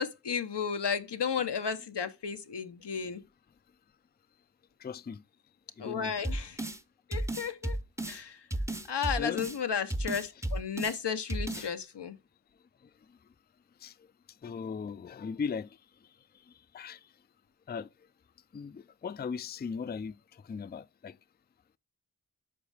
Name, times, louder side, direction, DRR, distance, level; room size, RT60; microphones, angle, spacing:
voice 1, 0.0-3.2 5.8-6.6 7.1-7.8 8.1-8.5 8.9-12.2, left 7 dB, 90° left, 0.8 m, -33 dB
voice 2, 4.8-5.2 5.8-6.1 9.2-9.4 11.5-11.7 13.8-13.9 14.4-15.8 16.7-17.0 17.7-17.9 18.5-21.2, left 6 dB, 25° left, 0.3 m, -38 dB
sound 1, 6.2-6.8 7.1-8.2 8.5-9.6 9.9-11.0 11.3-11.7, right 1 dB, 5° right, 0.6 m, -33 dB
8.5 x 5.3 x 3.3 m
wide cardioid pair, 55°, 40 cm